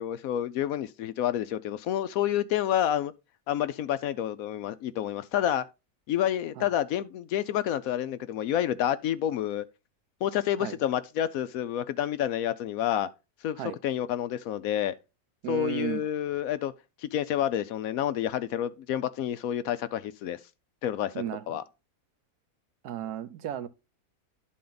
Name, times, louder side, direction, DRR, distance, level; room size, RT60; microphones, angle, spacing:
voice 1, 0.0-3.1 3.5-5.7 6.1-9.6 10.2-13.1 13.4-14.9 15.5-16.7 17.0-20.4 20.8-21.1 21.5-21.6, left 11 dB, 70° left, 1.0 m, -29 dB
voice 2, 15.4-16.0 21.1-21.6 22.8-23.7, right 10 dB, 85° right, 1.3 m, -34 dB
11.5 x 4.2 x 3.9 m
omnidirectional pair, 1.6 m